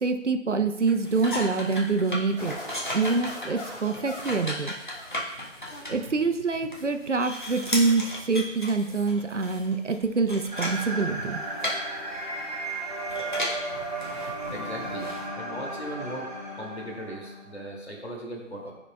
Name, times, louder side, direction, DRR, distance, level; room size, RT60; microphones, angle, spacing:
voice 1, 0.0-2.6 2.9-4.7 5.9-11.4, right 4 dB, 70° right, 8 dB, 0.8 m, -26 dB
sound 1, 0.8-15.3, left 1 dB, 40° left, 1.4 m, -36 dB
sound 2, 2.4-5.3 5.7-6.3, left 1 dB, 5° right, 2.6 m, -41 dB
sound 3, 10.5-17.6, right 2 dB, 30° right, 1.2 m, -35 dB
voice 2, 14.5-15.1 15.4-16.3 16.5-18.7, equal, 55° left, -1 dB, 2.3 m, -38 dB
12.5 x 5.0 x 2.3 m, 0.88 s
figure-of-eight pair, 180°, 37 cm